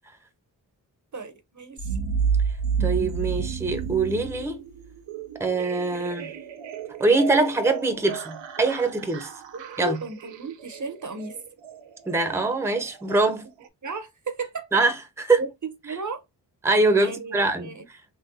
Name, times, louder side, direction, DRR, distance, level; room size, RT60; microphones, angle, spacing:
voice 1, 1.1-2.0 9.5-11.3 13.8-14.8 15.4-16.2 17.0-17.8, right 3 dB, 45° right, 0.8 m, -35 dB
sound 1, 1.8-4.5, right 6 dB, 50° left, 1.3 m, -26 dB
sound 2, 1.8-13.7, right 7 dB, 85° right, 0.6 m, -38 dB
voice 2, 2.8-4.6 5.4-6.3 7.0-9.3 9.8-10.0 12.1-13.4 14.7-15.4 16.6-17.7, right 3 dB, 5° right, 0.7 m, -23 dB
3.8 x 2.2 x 2.6 m
cardioid pair, 50°, 43 cm